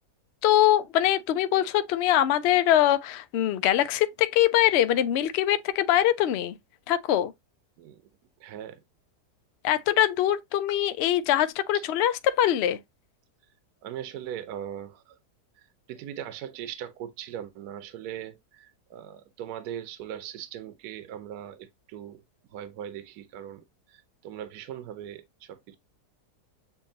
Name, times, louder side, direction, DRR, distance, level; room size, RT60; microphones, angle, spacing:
voice 1, 0.4-6.5 6.9-7.3 9.6-12.8, left 12 dB, 85° left, 0.5 m, -23 dB
voice 2, 8.4-8.8 11.7-11.9 13.8-15.2 15.9-22.2 22.5-25.7, right 10 dB, 75° right, 1.2 m, -40 dB
7.0 x 2.7 x 2.7 m
omnidirectional pair, 1.7 m